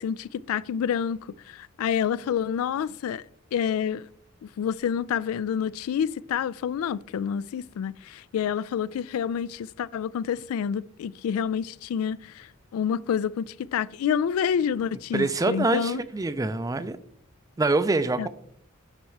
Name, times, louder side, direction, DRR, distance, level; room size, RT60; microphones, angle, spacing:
voice 1, 0.0-3.2 3.5-4.1 4.4-16.0 18.2-18.3, left 8 dB, 85° left, 0.3 m, -28 dB
voice 2, 15.1-17.0 17.6-18.3, right 3 dB, 15° right, 0.4 m, -25 dB
11.0 x 4.1 x 4.6 m
head